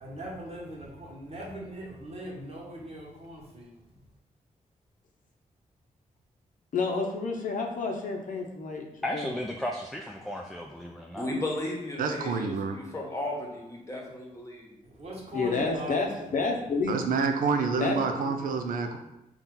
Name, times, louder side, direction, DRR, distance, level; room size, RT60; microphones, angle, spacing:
voice 1, 0.0-3.7 15.0-16.3, equal, 45° right, -4 dB, 1.2 m, -40 dB
voice 2, 6.7-8.9 9.1-9.3 15.3-17.0 17.8-18.3, left 4 dB, 70° left, 2 dB, 0.7 m, -30 dB
voice 3, 9.0-11.3, left 1 dB, ahead, 0 dB, 0.3 m, -34 dB
voice 4, 11.2-14.7, left 1 dB, 20° left, -2 dB, 1.1 m, -35 dB
voice 5, 12.0-12.8 16.9-19.0, right 5 dB, 90° right, 5 dB, 0.4 m, -28 dB
4.1 x 2.4 x 3.7 m, 0.91 s
cardioid pair, 85°, 14 cm